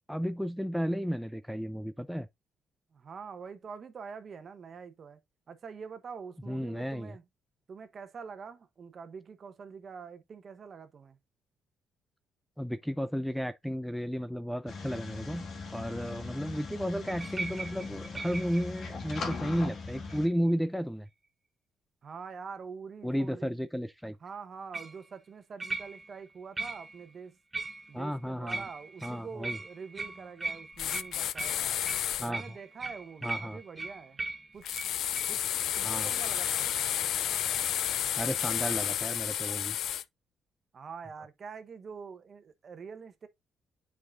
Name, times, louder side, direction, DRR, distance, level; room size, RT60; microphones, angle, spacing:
voice 1, 0.1-2.3 6.5-7.1 12.6-15.5 15.7-21.1 23.0-24.2 27.9-28.6 29.0-29.6 32.2-32.4 33.2-33.6 35.8-36.1 38.1-39.8, equal, ahead, 0.4 m, -33 dB
voice 2, 2.9-5.2 5.5-7.2 7.7-11.2 22.0-23.5 24.2-27.4 27.9-31.8 32.2-34.2 34.5-34.7 35.3-35.4 35.7-36.7 40.7-43.3, right 5 dB, 50° right, 1.0 m, -45 dB
sound 1, 14.7-20.3, left 4 dB, 60° left, 1.7 m, -40 dB
sound 2, 17.1-19.6 20.1-20.5 24.7-25.0 25.6-26.2 26.6-27.0 27.5-28.1 28.5-35.4 35.7-35.8 36.1-36.3, right 3 dB, 20° right, 1.2 m, -40 dB
sound 3, 30.8-32.3 34.6-40.0, left 11 dB, 75° left, 0.3 m, -31 dB
8.5 x 4.8 x 2.5 m
cardioid pair, 90°, 0 cm